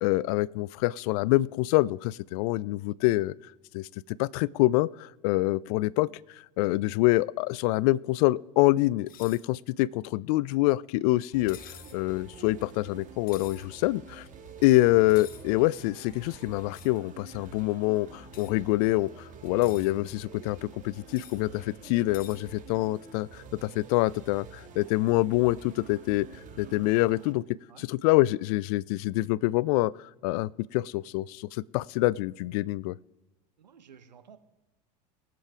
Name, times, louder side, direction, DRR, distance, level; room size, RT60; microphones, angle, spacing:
voice 1, 0.0-3.3 3.7-6.1 6.6-11.6 11.9-14.3 14.6-26.3 26.6-27.4 27.8-29.9 30.2-32.9, left 18 dB, 60° left, 23 dB, 0.4 m, -26 dB
sound 1, 9.1-9.4 11.5-12.0 13.3-13.7 15.1-15.4 16.7-17.0 18.3-18.5 19.4-19.9 21.1-21.4 22.1-22.4, left 10 dB, 40° left, 1.2 m, -48 dB
sound 2, 11.3-27.3, right 4 dB, 35° right, 1.9 m, -48 dB
voice 2, 33.6-34.4, right 7 dB, 90° right, 10 dB, 1.0 m, -53 dB
22.5 x 7.6 x 3.5 m, 1.1 s
hypercardioid pair, 80°, 21 cm